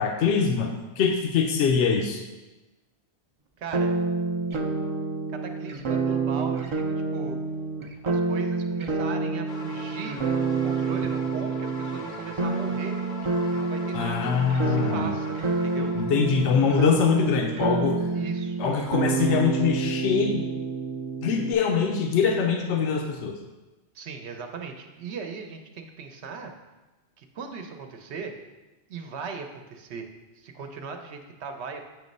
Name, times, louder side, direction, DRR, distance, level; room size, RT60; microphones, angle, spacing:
voice 1, 0.0-2.2 13.9-15.1 15.8-18.0 18.6-20.4 21.2-23.4, left 6 dB, 85° left, 3 dB, 0.9 m, -23 dB
voice 2, 3.6-3.9 5.3-7.4 8.0-10.2 10.5-12.9 13.5-14.3 14.6-15.9 18.1-18.6 23.9-26.5 27.2-28.3 28.9-30.1 30.3-31.9, right 5 dB, 75° right, 5 dB, 1.0 m, -38 dB
sound 1, 3.7-21.5, right 4 dB, 45° right, 0.4 m, -28 dB
sound 2, 9.5-16.9, left 3 dB, 50° left, 0.6 m, -41 dB
7.7 x 3.1 x 5.2 m, 1.1 s
omnidirectional pair, 1.1 m